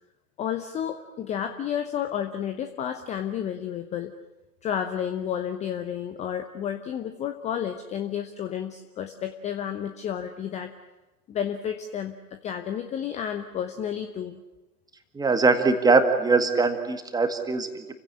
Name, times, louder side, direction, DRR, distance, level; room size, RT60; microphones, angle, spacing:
voice 1, 0.4-4.1 4.6-10.7 11.3-14.4, left 9 dB, 15° left, 9 dB, 0.9 m, -31 dB
voice 2, 15.1-18.0, right 4 dB, 10° right, 7 dB, 1.9 m, -22 dB
28.5 x 16.5 x 10.0 m, 1.1 s
figure-of-eight pair, 115°, 46 cm